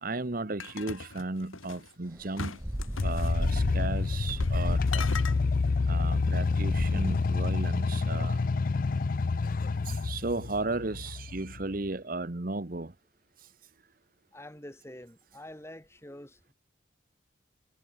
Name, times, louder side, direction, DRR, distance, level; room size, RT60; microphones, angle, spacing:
voice 1, 0.0-2.6 3.0-5.2 5.9-8.4 9.8-12.9, right 2 dB, 45° right, 1.0 m, -35 dB
sound 1, 0.6-1.9 2.4-3.4 4.3-4.6 4.9-5.4, left 4 dB, 90° left, 4.9 m, -39 dB
sound 2, 2.1-7.2, equal, 10° right, 1.0 m, -36 dB
sound 3, 3.0-11.9, left 4 dB, 45° left, 0.4 m, -28 dB
voice 2, 14.3-16.5, left 1 dB, 15° left, 2.5 m, -46 dB
head